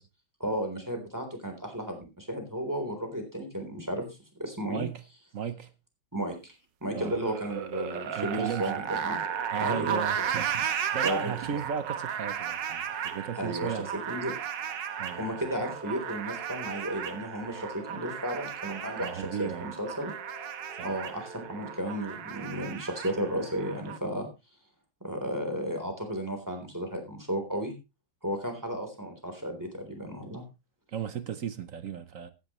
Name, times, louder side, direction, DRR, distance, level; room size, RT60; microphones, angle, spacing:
voice 1, 0.4-4.9 6.1-6.5 6.8-9.2 9.6-10.3 11.0-11.3 13.4-13.8 14.1-14.3 15.1-20.1 20.8-24.3 25.0-27.7 28.2-30.4, equal, 10° right, 3.6 m, -34 dB
voice 2, 4.7-5.0 5.3-5.7 6.9-7.2 8.2-8.7 9.5-13.9 15.0-15.2 19.0-19.7 20.7-21.0 30.9-32.3, right 8 dB, 55° right, 1.1 m, -35 dB
sound 1, 7.0-24.0, right 8 dB, 85° right, 1.7 m, -35 dB
sound 2, 15.1-21.8, right 3 dB, 35° right, 5.5 m, -49 dB
15.5 x 11.0 x 3.1 m
omnidirectional pair, 1.9 m